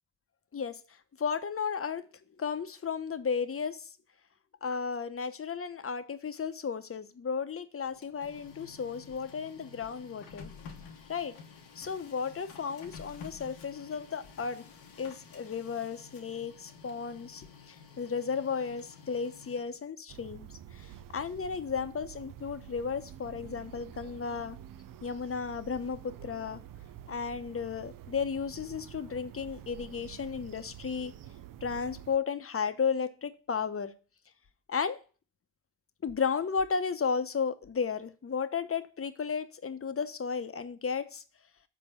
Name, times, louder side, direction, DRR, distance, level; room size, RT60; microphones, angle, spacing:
voice 1, 1.2-2.1 2.4-3.9 4.6-10.5 11.1-11.4 11.8-14.6 15.0-20.5 20.7-24.6 25.0-26.6 27.1-31.1 31.6-33.9 34.7-35.0 36.0-41.2, left 6 dB, 35° left, 0.9 m, -34 dB
Printer, 7.8-19.9, left 6 dB, 90° left, 1.2 m, -51 dB
sound 1, 20.1-32.2, right 10 dB, 55° right, 0.5 m, -48 dB
6.2 x 4.5 x 5.7 m
supercardioid pair, 50°, 39 cm